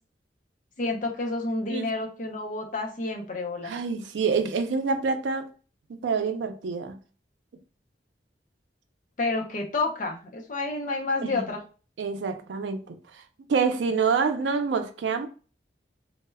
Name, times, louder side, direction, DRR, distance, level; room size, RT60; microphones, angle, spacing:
voice 1, 0.8-3.7 9.2-11.6, left 3 dB, 45° left, 0.5 m, -29 dB
voice 2, 3.6-5.5 5.9-7.0 11.2-11.5 12.0-13.2 13.5-15.3, right 5 dB, 85° right, 0.4 m, -27 dB
2.1 x 2.1 x 3.2 m
head